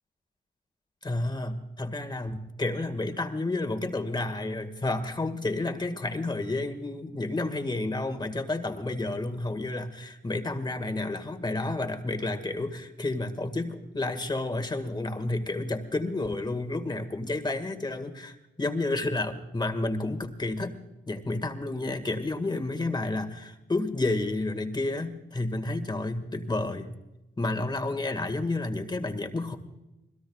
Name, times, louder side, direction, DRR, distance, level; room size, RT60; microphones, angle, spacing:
voice 1, 1.0-20.8 21.1-26.9 27.4-29.6, left 2 dB, 20° left, 6 dB, 1.9 m, -30 dB
27.5 x 20.5 x 2.4 m, 0.97 s
cardioid pair, 85°, 20 cm